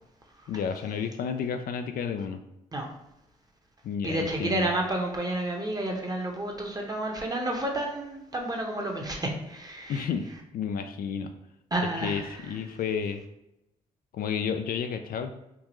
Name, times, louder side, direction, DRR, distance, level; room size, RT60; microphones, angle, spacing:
voice 1, 0.5-2.4 3.8-4.7 9.9-10.3 10.5-11.3 11.8-13.2 14.1-15.3, left 7 dB, 60° left, 7 dB, 0.4 m, -31 dB
voice 2, 4.0-10.1 11.7-12.3, right 1 dB, 20° right, 1 dB, 1.1 m, -30 dB
3.7 x 2.5 x 3.0 m, 0.88 s
hypercardioid pair, 45°, 17 cm